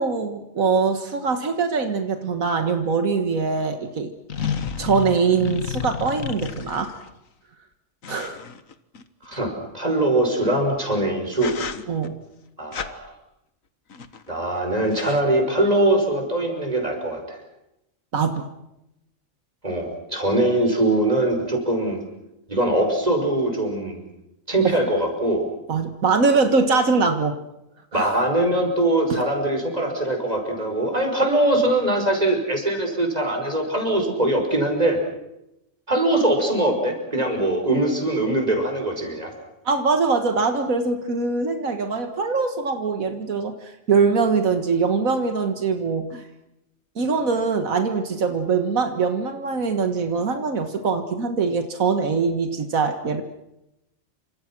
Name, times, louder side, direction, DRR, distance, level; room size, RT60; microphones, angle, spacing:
voice 1, 0.0-4.1 4.4-6.9 8.1-8.4 11.9-12.2 18.1-18.4 24.6-24.7 25.7-27.4 27.9-28.1 39.7-46.2 47.0-53.2, right 4 dB, 85° right, 7 dB, 2.0 m, -23 dB
sound 1, 3.3-3.4 4.3-7.1 8.0-9.4 10.8-11.0 11.3-12.1 12.7-12.9 13.9-14.3 14.6-14.7 14.8-15.2, left 7 dB, 75° left, 1.8 m, -32 dB
voice 2, 9.3-11.6 12.6-13.1 14.3-17.4 19.6-22.0 22.5-24.0 24.5-25.5 27.9-35.0 35.9-39.3, right 1 dB, 30° right, 3 dB, 6.0 m, -22 dB
28.5 x 26.0 x 6.2 m, 0.88 s
omnidirectional pair, 1.4 m